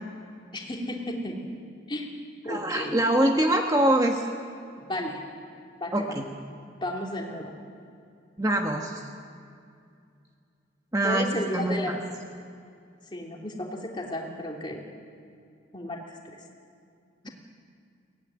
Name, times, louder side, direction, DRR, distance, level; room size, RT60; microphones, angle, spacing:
voice 1, 0.5-1.4 1.9-2.1 2.4-3.0 4.8-5.2 5.8-6.0 6.8-7.5 11.0-12.0 13.1-14.8 15.7-16.4, left 1 dB, 25° left, 0 dB, 3.0 m, -33 dB
voice 2, 2.5-4.2 5.9-6.3 8.4-9.0 10.9-12.0, right 1 dB, 15° right, 2 dB, 1.2 m, -24 dB
22.5 x 17.5 x 9.9 m, 2.4 s
head